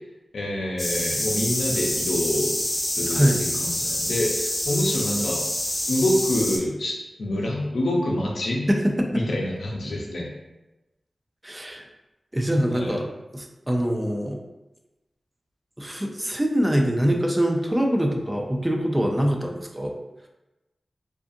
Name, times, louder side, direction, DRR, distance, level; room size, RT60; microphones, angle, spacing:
voice 1, 0.3-5.4 5.9-8.7 9.1-10.3 12.7-13.0, left 1 dB, 85° left, -2 dB, 0.5 m, -27 dB
sound 1, 0.8-6.6, left 1 dB, 35° left, 0.8 m, -27 dB
voice 2, 3.1-3.4 8.7-9.1 11.4-11.8 12.3-13.0 13.3-14.4 15.8-19.9, equal, 20° right, 2 dB, 0.4 m, -23 dB
2.5 x 2.4 x 2.6 m, 1.0 s
cardioid pair, 45°, 0 cm